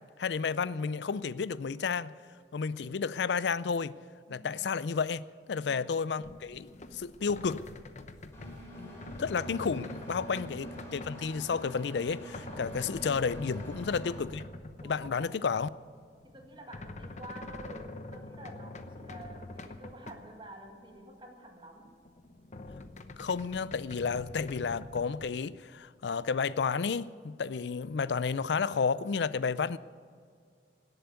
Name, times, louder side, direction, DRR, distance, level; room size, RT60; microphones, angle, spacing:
voice 1, 0.2-2.1 2.5-3.9 4.3-7.6 8.8-8.9 9.2-14.5 14.8-15.7 23.2-29.8, left 5 dB, 70° left, 0.4 m, -31 dB
voice 2, 4.3-4.8 12.4-13.0 14.8-15.4 16.2-21.9, right 1 dB, 30° right, 1.9 m, -50 dB
sound 1, 6.2-15.3 16.0-20.4 20.7-20.8 21.0-21.1 21.8-25.3, left 2 dB, 40° left, 0.8 m, -45 dB
Engine, 8.3-14.2, equal, 15° left, 4.6 m, -46 dB
17.5 x 8.0 x 9.5 m
head